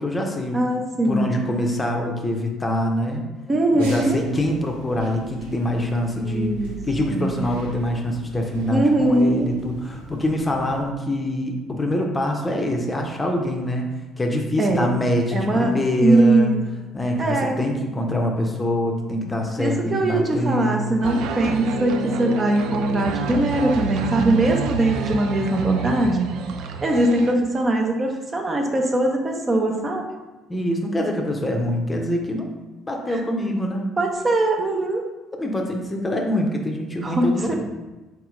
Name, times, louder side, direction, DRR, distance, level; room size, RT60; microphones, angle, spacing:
voice 1, 0.0-0.6 1.0-3.2 3.7-6.5 6.9-13.9 14.2-16.5 16.9-20.8 30.5-32.5 32.9-33.9 35.4-37.5, left 1 dB, 20° left, 2 dB, 0.7 m, -24 dB
voice 2, 0.5-1.3 3.5-4.3 6.2-6.8 7.1-7.3 8.7-9.5 14.6-14.9 15.3-15.7 16.0-16.6 17.2-17.6 19.6-26.3 26.8-30.0 33.1-33.2 34.0-35.0 37.0-37.5, right 2 dB, 30° right, 1 dB, 0.7 m, -21 dB
sound 1, 3.8-10.8, right 2 dB, 75° right, 0.7 m, -41 dB
sound 2, 21.0-27.3, right 4 dB, 60° right, 0.3 m, -28 dB
4.1 x 2.8 x 3.7 m, 1.1 s
figure-of-eight pair, 50°, 0 cm